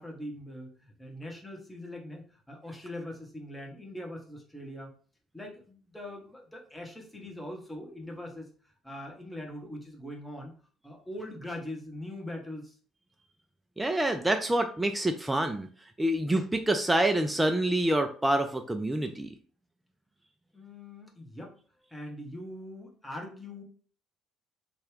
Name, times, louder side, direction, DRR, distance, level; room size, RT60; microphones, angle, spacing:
voice 1, 0.0-4.9 5.3-8.5 8.8-10.5 10.8-12.8 20.5-21.6 21.9-23.6, left 1 dB, 10° left, 0 dB, 1.0 m, -42 dB
voice 2, 13.8-15.7 16.0-19.3, right 1 dB, 10° right, 5 dB, 0.3 m, -27 dB
2.8 x 2.3 x 3.1 m, 0.43 s
figure-of-eight pair, 50°, 0 cm